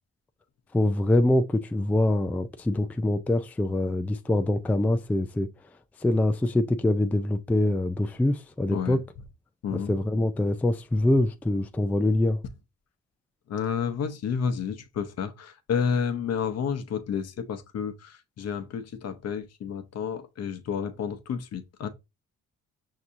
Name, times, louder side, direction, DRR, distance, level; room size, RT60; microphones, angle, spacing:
voice 1, 0.7-5.5 6.0-9.1 9.7-12.4, left 1 dB, 5° left, 0.3 m, -24 dB
voice 2, 9.6-9.9 13.5-21.9, left 7 dB, 55° left, 0.8 m, -30 dB
5.9 x 2.8 x 2.5 m
cardioid pair, 90°, 30 cm